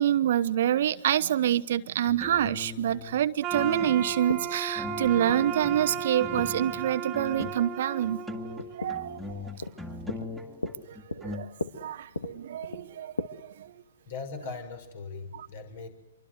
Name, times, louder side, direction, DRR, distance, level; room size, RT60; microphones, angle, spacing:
voice 1, 0.0-8.2 8.8-9.2 11.3-11.4 11.8-12.0 12.4-13.1, right 11 dB, 50° right, 1.0 m, -26 dB
sound 1, 2.1-3.2 3.5-4.4 4.8-7.8 8.0-11.4, left 2 dB, ahead, 2.5 m, -40 dB
sound 2, 3.2-13.2, left 3 dB, 75° left, 2.1 m, -40 dB
sound 3, 3.4-9.3, right 6 dB, 25° right, 2.0 m, -35 dB
voice 2, 14.1-15.9, left 4 dB, 50° left, 6.2 m, -39 dB
27.5 x 24.0 x 8.0 m
figure-of-eight pair, 115°, 0 cm